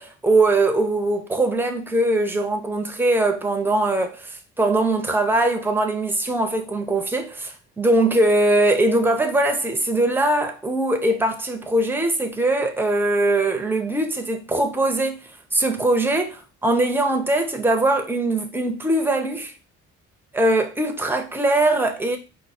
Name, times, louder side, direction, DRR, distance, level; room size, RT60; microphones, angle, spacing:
voice 1, 0.0-15.2 15.5-19.5 20.3-22.2, right 2 dB, 5° right, 0.5 m, -21 dB
4.5 x 2.1 x 4.1 m
cardioid pair, 140°, 30 cm